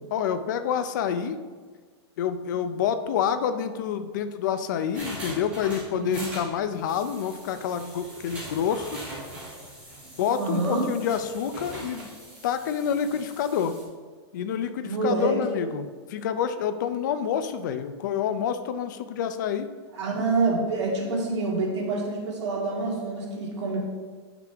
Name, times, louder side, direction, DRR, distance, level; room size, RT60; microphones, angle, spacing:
voice 1, 0.1-1.4 2.2-9.0 10.2-12.1 12.4-13.7 14.3-19.7, left 8 dB, 45° left, 10 dB, 0.5 m, -28 dB
sound 1, 4.9-13.8, equal, 10° right, 1.8 m, -41 dB
voice 2, 10.3-10.9 14.8-15.6 19.9-23.8, right 3 dB, 85° right, -3 dB, 2.4 m, -27 dB
8.5 x 5.9 x 3.5 m, 1.5 s
supercardioid pair, 180°, 15 cm